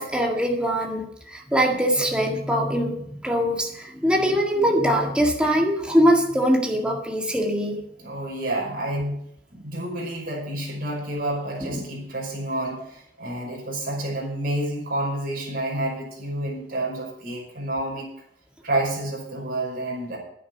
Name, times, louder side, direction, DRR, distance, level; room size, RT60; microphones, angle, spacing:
voice 1, 0.0-7.8 11.6-11.8, equal, 5° right, 0 dB, 2.0 m, -22 dB
voice 2, 8.0-9.2 9.5-18.1 18.6-20.2, right 1 dB, 55° right, -2 dB, 5.5 m, -29 dB
10.5 x 9.6 x 7.2 m, 0.72 s
head